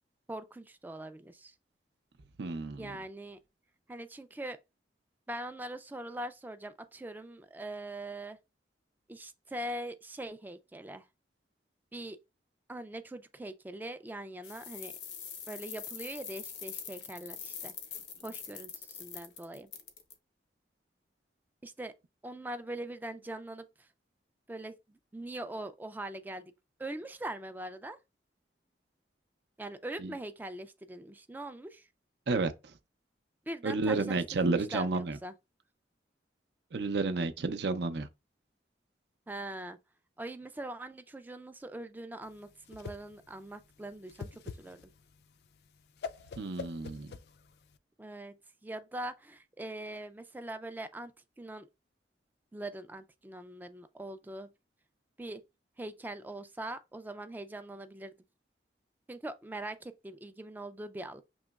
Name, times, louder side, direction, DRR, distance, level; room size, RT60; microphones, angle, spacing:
voice 1, 0.3-1.5 2.8-3.4 3.9-4.6 5.3-8.4 9.1-11.1 11.9-12.2 12.7-14.9 15.5-17.7 18.2-19.7 21.6-21.9 22.2-23.9 24.5-26.5 26.8-28.0 29.6-31.9 33.5-35.3 39.3-39.8 40.2-44.9 48.0-48.4 48.6-51.1 51.4-51.7 52.5-54.5 55.2-55.4 55.8-58.2 59.1-61.2, right 1 dB, 10° right, 0.3 m, -42 dB
voice 2, 2.4-3.0 30.0-30.1 32.3-32.5 33.6-35.2 36.7-38.1 46.4-47.1, right 3 dB, 70° right, 0.5 m, -31 dB
sound 1, 14.4-20.1, left 8 dB, 90° left, 0.8 m, -44 dB
Whoosh swoosh swish, 42.3-47.8, left 5 dB, 65° left, 0.4 m, -45 dB
6.1 x 2.9 x 2.3 m
head